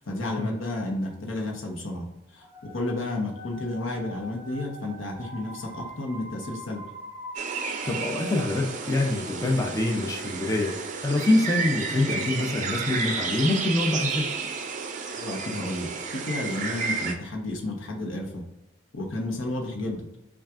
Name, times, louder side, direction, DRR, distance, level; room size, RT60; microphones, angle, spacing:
voice 1, 0.0-6.8 15.1-18.4 18.9-20.1, left 2 dB, 90° left, 1 dB, 0.9 m, -32 dB
sound 1, 2.4-9.2, right 1 dB, 20° right, 1.0 m, -43 dB
sound 2, 7.4-17.1, right 5 dB, 40° right, 0.4 m, -31 dB
voice 2, 7.8-10.7 11.0-14.3, left 2 dB, 15° left, 1 dB, 0.4 m, -25 dB
5.7 x 2.4 x 2.4 m, 0.93 s
head